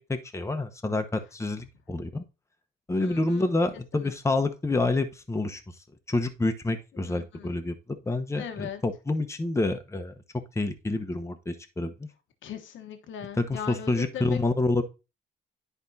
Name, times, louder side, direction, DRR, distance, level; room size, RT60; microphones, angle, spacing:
voice 1, 0.0-2.2 2.9-5.6 6.1-10.1 10.5-12.1 13.4-14.8, left 2 dB, 15° left, 6 dB, 0.9 m, -28 dB
voice 2, 3.0-3.4 3.9-4.1 7.0-7.5 8.3-8.8 12.4-14.4, left 8 dB, 75° left, 7 dB, 1.1 m, -39 dB
10.5 x 4.5 x 2.7 m, 0.28 s
cardioid pair, 90°, 20 cm